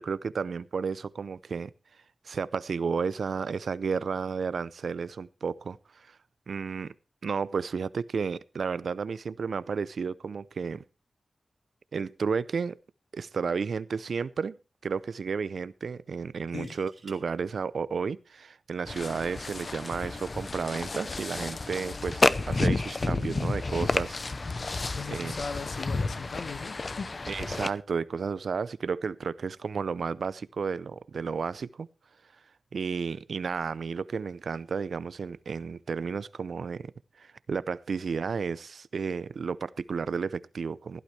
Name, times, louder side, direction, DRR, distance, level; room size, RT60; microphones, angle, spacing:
voice 1, 0.0-1.7 2.2-6.2 6.5-6.9 7.2-10.8 11.9-12.8 13.1-14.6 14.8-24.2 25.1-25.4 27.3-31.9 32.7-36.9 37.2-41.0, right 5 dB, 80° right, 0.5 m, -32 dB
sound 1, 16.4-17.2 19.0-19.3, right 4 dB, 55° right, 2.7 m, -53 dB
sound 2, 18.8-27.7, left 3 dB, 45° left, 0.7 m, -30 dB
voice 2, 24.8-27.1, left 5 dB, 80° left, 1.5 m, -38 dB
16.0 x 12.0 x 3.3 m
wide cardioid pair, 95°, 0 cm